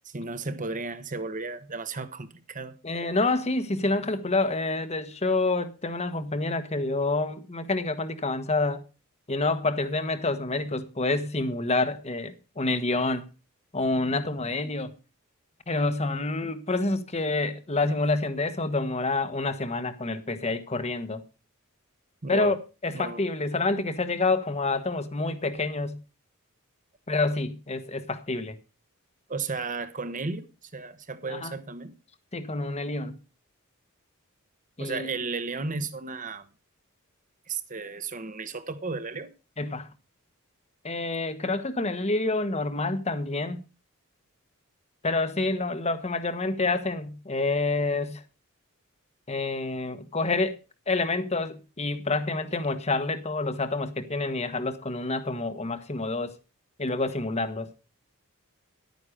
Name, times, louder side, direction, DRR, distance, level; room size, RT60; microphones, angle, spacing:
voice 1, 0.0-2.7 22.2-22.6 22.9-23.2 29.3-32.0 34.8-36.5 37.5-39.3, right 4 dB, 35° right, 1.2 m, -34 dB
voice 2, 2.8-8.8 9.3-13.3 13.7-14.9 15.7-21.2 22.3-22.6 22.8-26.0 27.1-28.6 31.3-31.5 32.3-33.2 34.8-35.1 39.6-39.9 40.8-43.6 45.0-48.2 49.3-50.6 50.9-56.3 56.8-57.7, left 3 dB, 30° left, 1.2 m, -28 dB
11.5 x 9.5 x 5.0 m
head